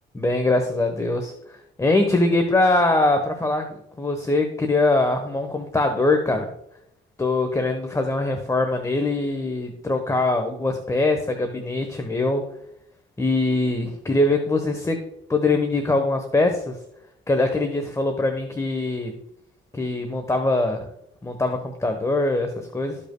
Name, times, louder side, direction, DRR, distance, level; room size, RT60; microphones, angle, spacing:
voice 1, 0.2-6.5 7.2-12.4 13.2-15.0 15.3-16.8 17.3-19.2 19.7-20.9 21.2-23.0, left 2 dB, 15° left, 5 dB, 1.0 m, -22 dB
13.5 x 5.3 x 2.2 m, 0.77 s
cardioid pair, 90°, 20 cm